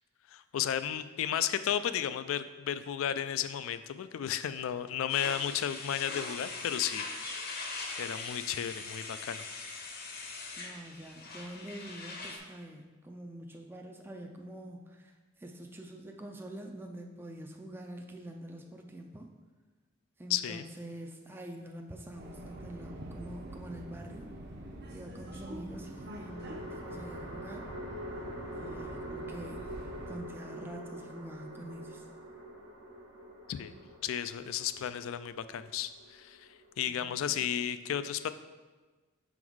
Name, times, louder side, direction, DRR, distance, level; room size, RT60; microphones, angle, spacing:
voice 1, 0.3-7.7 8.0-9.4 20.3-20.7 33.5-33.7 34.0-36.5 36.8-38.3, left 9 dB, 70° left, 12 dB, 0.3 m, -33 dB
sound 1, 5.1-12.4, left 3 dB, 50° left, 0.8 m, -41 dB
voice 2, 10.6-19.3 20.2-24.3 24.9-27.7 28.5-29.8 30.1-32.1 36.9-37.5, right 1 dB, 10° right, 2 dB, 0.4 m, -46 dB
Subway metro underground, 22.2-30.2, right 1 dB, 55° right, 0.8 m, -45 dB
sound 2, 22.6-23.4 25.7-37.0, right 1 dB, 80° right, 1.2 m, -45 dB
6.1 x 3.9 x 4.6 m, 1.3 s
head